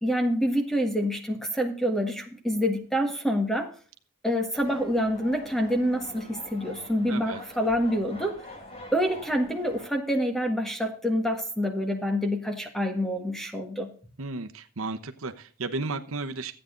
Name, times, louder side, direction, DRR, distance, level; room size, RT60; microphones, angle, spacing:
voice 1, 0.0-3.7 4.2-8.4 8.9-13.9, equal, ahead, 4 dB, 1.6 m, -27 dB
sound 1, 4.5-9.9, left 1 dB, 25° left, 2.1 m, -45 dB
voice 2, 7.1-7.4 14.2-16.5, right 3 dB, 75° right, 8 dB, 1.0 m, -34 dB
13.5 x 8.7 x 3.9 m, 0.42 s
head